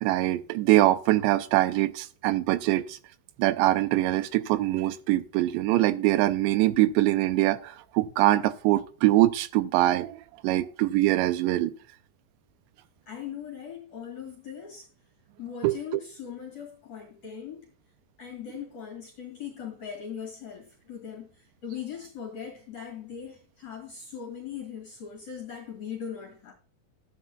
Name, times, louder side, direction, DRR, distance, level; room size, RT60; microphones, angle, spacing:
voice 1, 0.0-3.0 3.4-11.7 15.6-15.8, right 16 dB, 80° right, 2.6 m, -23 dB
voice 2, 13.1-14.9 15.4-17.7 18.2-26.5, left 8 dB, 50° left, 2.9 m, -40 dB
15.0 x 9.8 x 2.2 m
omnidirectional pair, 5.2 m